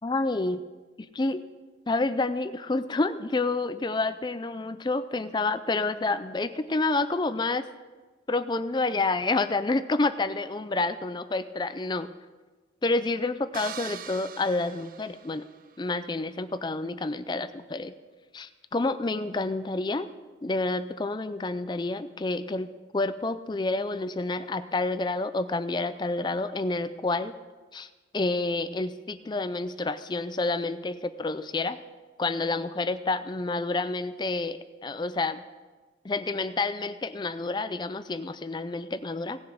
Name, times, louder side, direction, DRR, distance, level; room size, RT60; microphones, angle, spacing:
voice 1, 0.0-0.6 1.0-1.4 1.9-7.6 8.3-12.1 12.8-15.4 15.8-17.9 18.3-20.1 20.4-22.7 22.9-27.3 27.7-27.9 28.1-31.8 32.2-35.4 36.0-39.4, left 3 dB, 25° left, 12 dB, 0.4 m, -29 dB
sound 1, 13.5-15.8, right 8 dB, 50° right, 0.5 m, -42 dB
17.5 x 7.2 x 5.1 m, 1.3 s
head